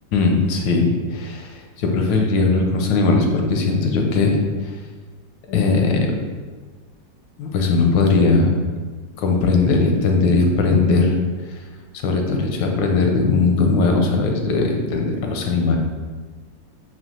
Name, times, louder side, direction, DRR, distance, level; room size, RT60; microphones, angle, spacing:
voice 1, 0.1-4.4 5.5-6.1 7.4-8.5 9.2-11.1 12.0-15.8, left 3 dB, 85° left, 2 dB, 1.3 m, -19 dB
4.3 x 2.3 x 3.7 m, 1.5 s
omnidirectional pair, 2.0 m